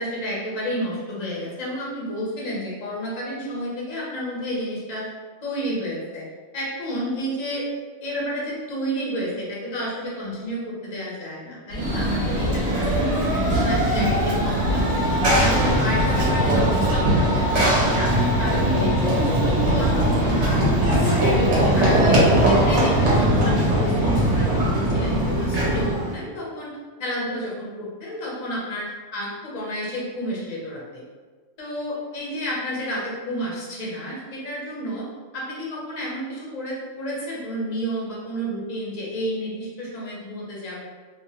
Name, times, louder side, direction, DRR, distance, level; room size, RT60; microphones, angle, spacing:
voice 1, 0.0-5.1 5.4-6.2 6.5-7.7 8.0-15.0 15.4-21.2 21.7-31.0 31.6-35.1 35.3-40.8, equal, 40° left, -5 dB, 0.7 m, -31 dB
Run / Train, 11.7-26.2, right 1 dB, 65° right, 1.1 m, -20 dB
2.8 x 2.2 x 2.8 m, 1.4 s
omnidirectional pair, 1.3 m